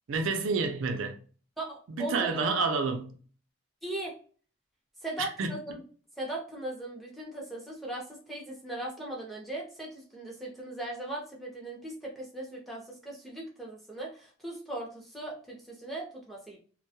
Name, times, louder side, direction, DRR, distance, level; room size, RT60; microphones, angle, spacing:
voice 1, 0.1-1.2 1.9-3.2 5.2-5.5, right 4 dB, 80° right, 0.4 m, -29 dB
voice 2, 1.6-2.4 3.8-4.1 5.0-5.8 6.2-16.6, right 1 dB, ahead, 0.6 m, -39 dB
2.2 x 2.1 x 2.7 m
head